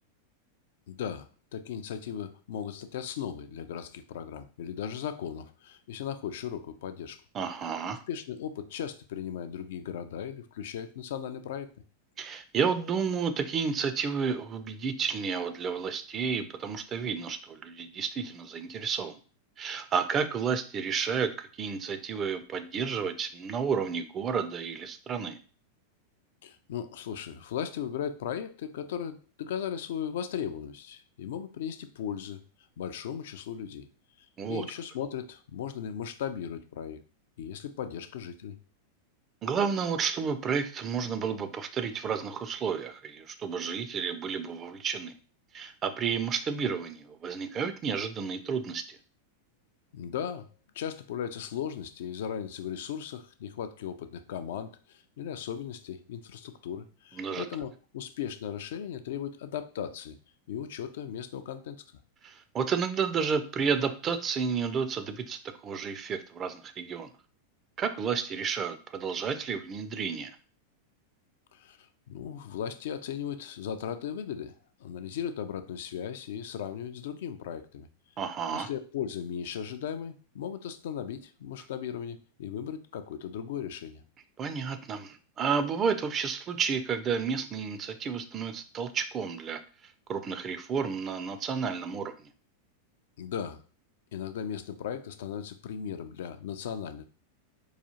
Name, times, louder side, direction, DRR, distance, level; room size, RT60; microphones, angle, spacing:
voice 1, 0.9-7.2 8.1-11.7 26.4-32.4 32.8-33.9 34.2-37.0 37.4-38.6 49.9-50.5 50.7-60.2 60.5-61.8 71.5-77.9 78.5-84.0 93.2-93.6 94.1-97.0, left 8 dB, 55° left, 9 dB, 0.3 m, -37 dB
voice 2, 7.3-8.0 12.2-19.2 19.6-25.4 34.4-34.6 39.4-45.1 45.5-48.8 57.2-57.5 62.2-67.1 67.8-70.3 78.2-78.7 84.4-92.3, right 6 dB, 25° right, 9 dB, 0.4 m, -31 dB
4.8 x 2.4 x 2.8 m, 0.38 s
figure-of-eight pair, 90°, 0 cm